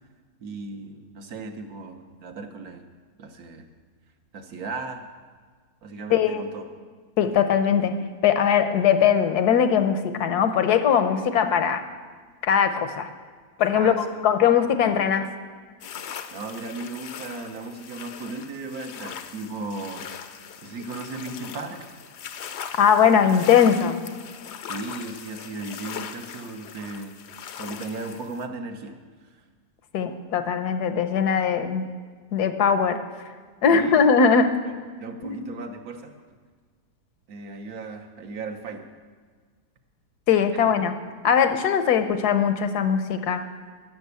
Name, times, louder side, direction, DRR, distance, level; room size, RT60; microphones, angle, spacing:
voice 1, 0.4-2.8 3.2-3.7 4.3-5.1 5.8-6.6 13.7-14.2 16.3-20.1 20.6-22.0 24.6-27.2 27.6-29.0 29.2-29.4 33.7-34.1 35.0-36.2 37.3-38.9 40.5-40.6, right 3 dB, 65° right, 5 dB, 1.5 m, -36 dB
voice 2, 6.1-6.4 7.2-7.9 8.2-11.8 12.4-13.1 13.6-15.3 22.8-24.0 29.9-31.8 32.3-33.0 33.6-34.5 35.2-35.4 40.3-40.9 41.2-43.4, left 7 dB, 80° left, 9 dB, 1.4 m, -20 dB
sound 1, 15.8-28.5, left 8 dB, 60° left, 0.7 m, -40 dB
12.0 x 7.0 x 8.2 m, 1.5 s
omnidirectional pair, 1.7 m